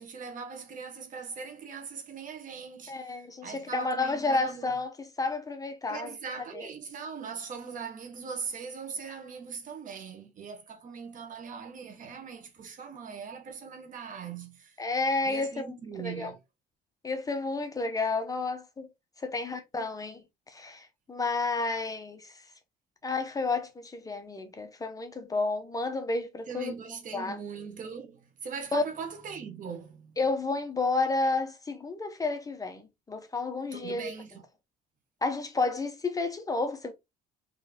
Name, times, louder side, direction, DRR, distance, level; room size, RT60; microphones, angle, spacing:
voice 1, 0.0-4.8 5.9-14.8 15.2-16.4 26.5-30.2 33.7-34.4, right 6 dB, 50° right, 1.3 m, -40 dB
voice 2, 2.9-6.1 6.5-6.7 14.8-15.7 16.0-16.3 17.0-18.9 19.2-20.2 20.5-22.3 23.0-26.7 27.1-27.4 28.7-28.8 30.2-34.1 35.2-36.9, left 3 dB, 20° left, 0.7 m, -31 dB
3.9 x 3.1 x 2.8 m
cardioid pair, 110°, 17 cm